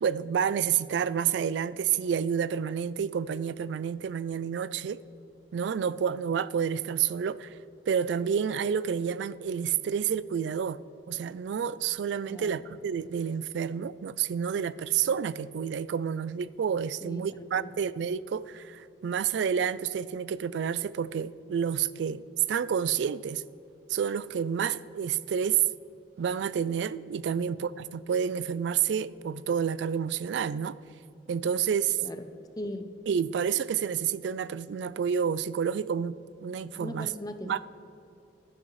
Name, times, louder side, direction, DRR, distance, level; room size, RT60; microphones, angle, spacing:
voice 1, 0.0-5.0 5.5-7.6 7.9-10.8 11.1-22.2 22.5-23.4 23.9-25.6 26.2-30.8 31.3-32.0 33.1-36.2 36.4-37.1 37.4-37.6, right 7 dB, 70° right, 0.3 m, -29 dB
voice 2, 12.3-12.6 17.0-17.7 27.3-27.6 32.0-32.9 36.8-37.6, left 1 dB, 20° left, 0.6 m, -40 dB
16.0 x 11.5 x 3.2 m
head